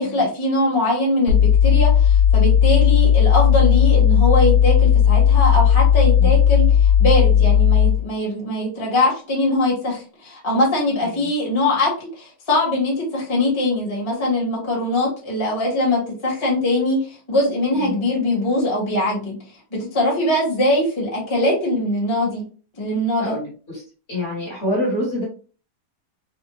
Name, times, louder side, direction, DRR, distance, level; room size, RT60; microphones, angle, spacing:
voice 1, 0.0-19.3 19.7-22.4 22.8-23.4, left 1 dB, 15° left, -4 dB, 1.2 m, -22 dB
sound 1, 1.3-8.1, left 9 dB, 80° right, 1.5 m, -15 dB
voice 2, 24.1-25.2, left 1 dB, 35° left, -4 dB, 1.5 m, -25 dB
4.2 x 2.2 x 3.1 m, 0.38 s
omnidirectional pair, 2.3 m